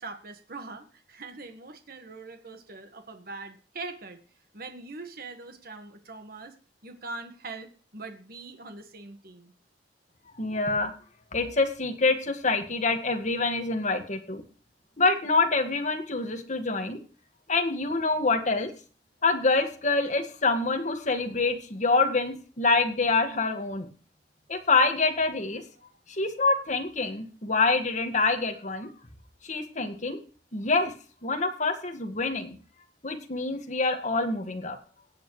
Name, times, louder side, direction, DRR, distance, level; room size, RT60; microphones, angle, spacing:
voice 1, 0.0-4.2 4.5-6.6 6.8-9.5, right 3 dB, 60° right, 6 dB, 1.6 m, -42 dB
voice 2, 10.4-10.9 11.3-14.4 15.0-17.0 17.5-18.7 19.2-23.9 24.5-25.6 26.1-28.9 29.4-30.2 30.5-30.9 31.2-32.6 33.0-34.8, left 3 dB, 45° left, 5 dB, 1.8 m, -26 dB
17.5 x 8.3 x 3.2 m, 0.39 s
head